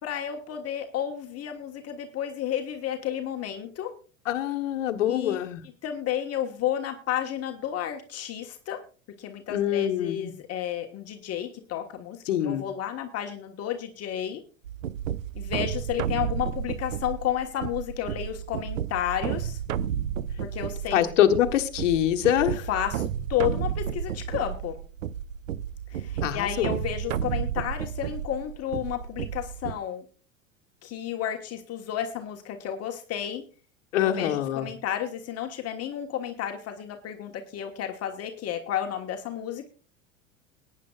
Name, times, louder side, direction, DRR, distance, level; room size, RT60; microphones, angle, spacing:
voice 1, 0.0-3.9 5.1-5.4 5.8-8.8 9.2-12.2 12.4-14.4 15.3-19.6 20.4-21.0 22.7-24.8 25.9-30.0 30.8-33.4 34.0-39.7, left 10 dB, 40° left, 4 dB, 1.4 m, -32 dB
voice 2, 4.2-5.6 9.5-10.3 12.3-12.6 20.9-22.7 26.2-26.7 33.9-34.7, left 11 dB, 70° left, 6 dB, 1.4 m, -24 dB
sound 1, 14.6-29.8, right 9 dB, 80° right, 0.6 m, -32 dB
21.5 x 9.6 x 2.4 m, 0.36 s
figure-of-eight pair, 80°, 39 cm